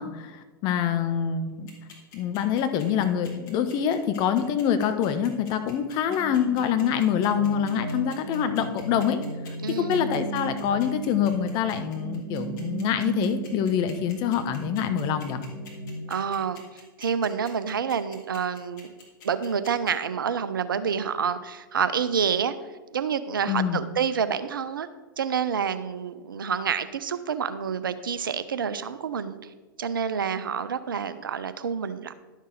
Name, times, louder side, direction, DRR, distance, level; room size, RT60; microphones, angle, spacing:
voice 1, 0.0-1.7 2.1-9.2 9.7-15.4 23.5-23.8, left 8 dB, 40° left, 9 dB, 0.8 m, -25 dB
sound 1, 1.7-19.9, left 5 dB, 55° left, 2.5 m, -48 dB
sound 2, 6.1-16.1, right 3 dB, 45° right, 2.7 m, -36 dB
voice 2, 9.6-10.1 16.1-16.6 17.0-18.9 19.2-22.5 22.9-24.9 25.2-29.5 29.8-32.1, right 7 dB, 70° right, 12 dB, 0.5 m, -28 dB
11.0 x 6.4 x 3.9 m, 1.3 s
figure-of-eight pair, 95°, 12 cm